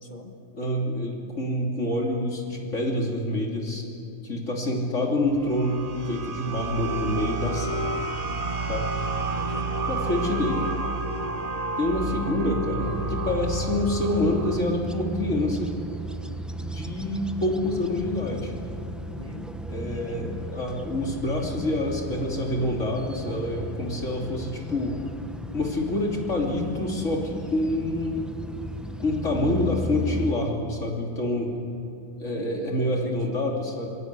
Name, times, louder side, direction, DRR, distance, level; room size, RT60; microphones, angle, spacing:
voice 1, 0.0-0.3 9.4-9.8 19.2-19.5 32.2-33.3, left 2 dB, 40° left, 4 dB, 1.7 m, -41 dB
voice 2, 0.5-3.8 4.2-7.9 8.7-8.9 9.9-10.7 11.8-15.7 16.6-18.5 19.7-24.9 25.5-28.3 29.0-31.5 32.2-33.9, left 1 dB, 80° left, 0 dB, 3.3 m, -27 dB
sound 1, 5.2-14.6, right 3 dB, 35° right, 1.0 m, -30 dB
sound 2, 12.8-30.4, right 1 dB, ahead, 0.9 m, -35 dB
26.5 x 18.5 x 8.3 m, 2.7 s
omnidirectional pair, 1.3 m